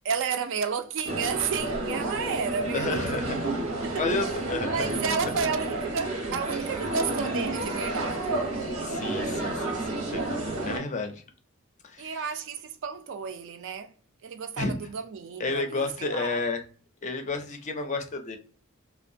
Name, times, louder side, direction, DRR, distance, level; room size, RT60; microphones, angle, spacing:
voice 1, 0.0-3.4 3.8-4.1 4.6-8.4 12.0-13.9 14.2-16.4, right 6 dB, 60° right, 0.4 m, -32 dB
sound 1, 1.0-10.8, right 2 dB, 90° right, 0.9 m, -30 dB
voice 2, 2.7-3.3 3.9-5.0 8.8-11.2 11.8-12.2 14.6-14.9 15.4-16.6 17.0-18.4, left 3 dB, 35° left, 0.4 m, -31 dB
2.6 x 2.1 x 2.5 m
head